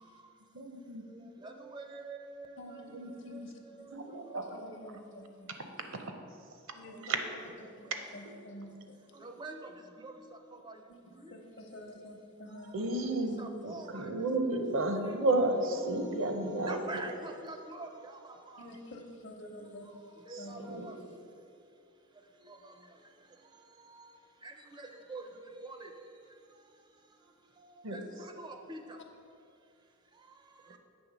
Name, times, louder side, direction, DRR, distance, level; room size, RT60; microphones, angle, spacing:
voice 1, 0.0-4.9 6.8-7.3 7.6-7.9 9.1-11.4 12.5-14.3 15.0-15.2 15.8-18.8 19.6-30.8, right 2 dB, 20° right, 0.4 m, -49 dB
voice 2, 0.5-1.3 2.9-3.5 3.9-4.4 6.0-6.1 7.0-7.2 8.2-8.3 12.7-16.8 20.3-20.4 20.7-20.9 27.8-28.0 30.7-30.8, right 2 dB, 65° right, 0.7 m, -32 dB
voice 3, 2.6-3.9 4.3-5.5 6.7-7.1 7.8-9.0 10.9-11.0 11.3-12.9 13.3-13.5 13.8-13.9 18.6-20.7, left 1 dB, 60° left, 0.8 m, -49 dB
8.0 x 3.5 x 6.0 m
head